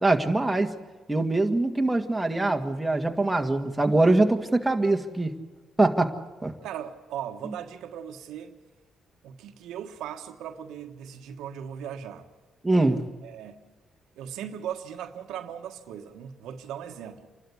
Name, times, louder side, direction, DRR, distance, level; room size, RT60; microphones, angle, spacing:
voice 1, 0.0-0.7 1.1-5.3 5.8-6.5 12.6-13.0, right 2 dB, 10° right, 1.9 m, -23 dB
voice 2, 6.6-8.6 9.2-12.3 13.2-13.6 14.2-17.3, right 9 dB, 85° right, 1.4 m, -38 dB
28.5 x 12.5 x 8.3 m
cardioid pair, 90°, 0 cm